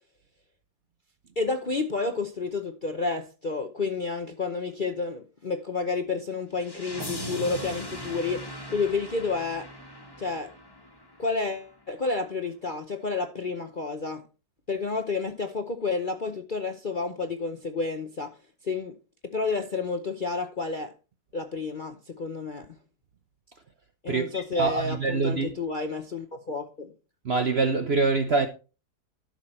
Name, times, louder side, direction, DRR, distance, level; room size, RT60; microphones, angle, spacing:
voice 1, 1.4-9.7 10.2-10.5 11.2-14.2 14.7-18.4 18.6-19.0 19.2-20.9 21.3-22.8 24.0-26.9, left 4 dB, 45° left, 0.6 m, -30 dB
sound 1, 6.6-11.5, equal, 15° left, 1.5 m, -39 dB
voice 2, 24.1-25.5 27.2-28.5, right 4 dB, 50° right, 0.7 m, -25 dB
12.0 x 6.2 x 4.3 m
omnidirectional pair, 1.9 m